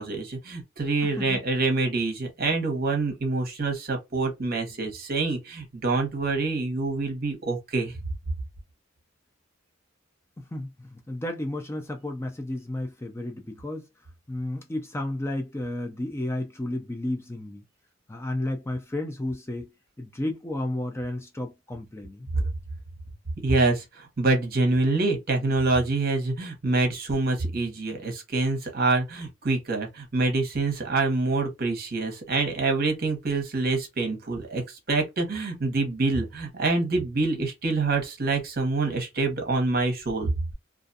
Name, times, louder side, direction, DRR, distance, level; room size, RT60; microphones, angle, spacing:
voice 1, 0.0-8.0 22.3-22.4 23.4-40.5, right 3 dB, 50° right, 0.9 m, -26 dB
voice 2, 1.0-1.4 10.5-13.9 14.3-17.6 18.1-19.7 20.0-22.3, left 1 dB, 15° left, 0.3 m, -32 dB
2.4 x 2.3 x 2.6 m
head